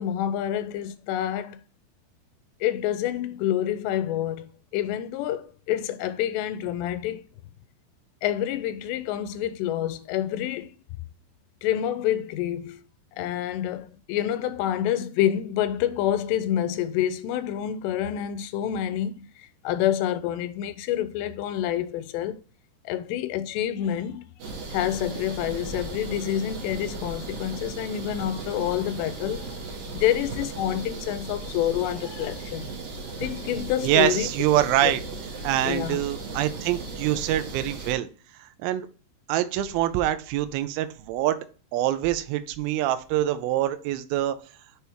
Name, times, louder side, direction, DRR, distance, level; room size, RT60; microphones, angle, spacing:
voice 1, 0.0-1.6 2.6-4.5 4.7-7.2 8.2-10.7 11.6-12.8 13.2-22.4 22.9-24.3 24.7-29.6 29.9-32.7 33.2-34.3 34.8-34.9 35.7-36.0, left 11 dB, 90° left, 2.7 m, -27 dB
sound 1, 24.4-37.9, right 3 dB, 65° right, 2.8 m, -36 dB
voice 2, 33.8-35.0 35.4-38.1 38.4-38.9 39.3-41.4 41.7-44.4, right 13 dB, 85° right, 2.2 m, -25 dB
6.7 x 3.4 x 4.5 m
omnidirectional pair, 4.9 m